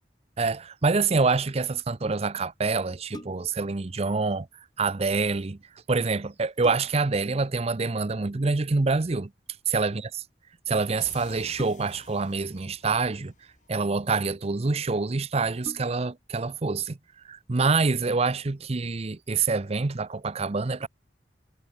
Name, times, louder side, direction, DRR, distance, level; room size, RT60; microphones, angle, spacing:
voice 1, 0.4-4.5 4.8-5.6 5.9-9.3 9.7-10.0 10.7-13.3 13.7-17.0 17.2-20.9, right 4 dB, 35° right, 0.6 m, -26 dB
sound 1, 3.1-3.7 5.7-5.8 6.3-7.2 8.7-9.1 11.6-12.2 13.1-13.8 14.6-14.7 15.0-15.1 15.6-16.2 16.7-16.8, left 1 dB, 25° left, 6.2 m, -45 dB
sound 2, 11.0-14.5, left 4 dB, 45° left, 5.0 m, -52 dB
head